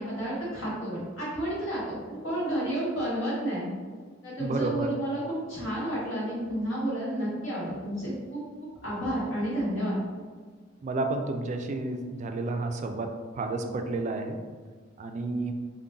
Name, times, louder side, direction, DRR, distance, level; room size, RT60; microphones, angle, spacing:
voice 1, 0.0-3.7 4.2-8.4 8.8-10.0, right 1 dB, 80° left, -8 dB, 1.4 m, -31 dB
voice 2, 4.4-4.9 10.8-14.4 15.0-15.5, right 2 dB, 35° right, 5 dB, 0.3 m, -31 dB
3.7 x 2.1 x 3.9 m, 1.5 s
head